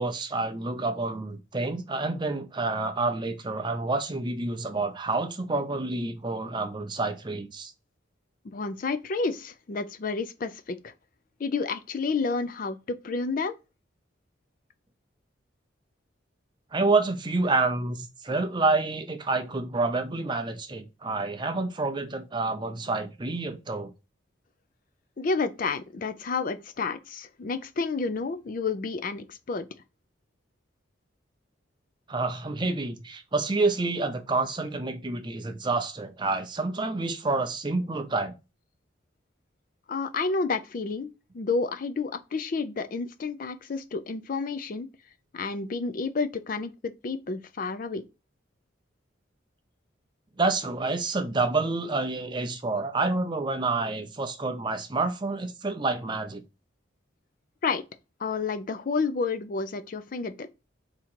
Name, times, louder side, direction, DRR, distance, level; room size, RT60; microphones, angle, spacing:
voice 1, 0.0-7.7 16.7-23.9 32.1-38.4 50.4-56.4, right 3 dB, 25° right, 0.5 m, -28 dB
voice 2, 8.4-10.9 11.4-13.6 25.2-29.7 39.9-41.1 41.3-44.9 45.3-48.0 57.6-57.8 58.2-60.5, left 4 dB, 45° left, 0.4 m, -30 dB
3.7 x 2.9 x 4.4 m
head